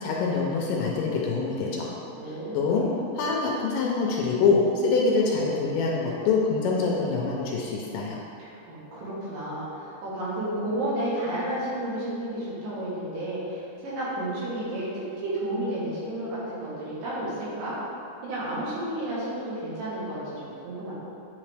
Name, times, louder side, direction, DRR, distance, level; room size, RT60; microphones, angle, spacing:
voice 1, 0.0-1.9 2.3-2.9 3.1-8.2, left 4 dB, 80° left, -2 dB, 2.1 m, -25 dB
voice 2, 2.1-3.1 8.4-17.9 18.2-20.9, right 1 dB, 75° right, -9 dB, 3.2 m, -32 dB
9.4 x 3.4 x 3.3 m, 2.7 s
omnidirectional pair, 4.1 m